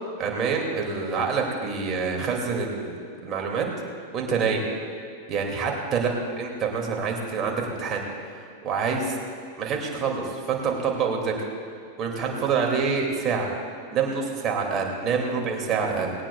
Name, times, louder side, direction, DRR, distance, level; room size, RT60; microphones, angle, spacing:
voice 1, 0.2-3.7 4.1-4.6 5.3-8.0 8.3-9.2 9.6-11.5 12.0-13.5 13.9-16.1, right 5 dB, 30° right, 0 dB, 2.5 m, -26 dB
19.5 x 17.5 x 2.4 m, 2.4 s
figure-of-eight pair, 90°, 0 cm